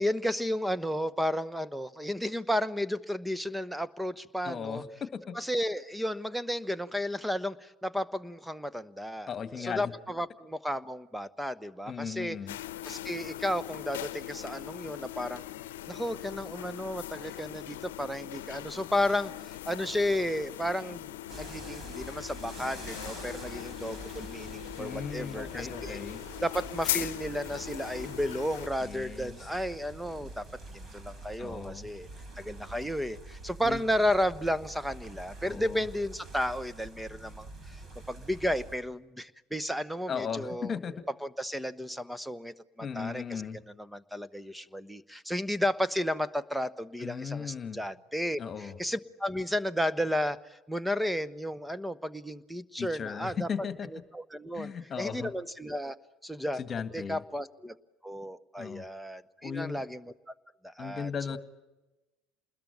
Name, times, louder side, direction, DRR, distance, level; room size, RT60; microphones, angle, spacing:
voice 1, 0.0-4.8 5.3-9.3 9.6-12.4 12.8-15.4 15.9-26.0 26.4-30.4 30.7-32.1 32.4-37.8 38.1-40.8 41.2-43.4 43.8-53.5 54.1-56.0 56.2-56.6 56.9-57.8 58.0-60.0 60.6-61.1, equal, ahead, 16 dB, 1.0 m, -33 dB
voice 2, 4.4-5.4 9.3-9.9 11.9-12.6 24.8-26.2 28.8-29.4 31.4-31.9 33.6-33.8 35.5-35.8 40.1-40.9 42.8-43.6 47.0-47.8 48.4-48.8 52.8-53.9 54.5-55.3 56.6-57.2 58.6-58.9 59.4-59.8 60.8-61.4, left 6 dB, 35° left, 10 dB, 1.9 m, -37 dB
sound 1, 12.5-28.7, left 14 dB, 75° left, 0.9 m, -40 dB
sound 2, 21.3-38.8, right 2 dB, 35° right, 5.4 m, -46 dB
28.0 x 21.0 x 9.3 m, 1.1 s
hypercardioid pair, 70°, 0 cm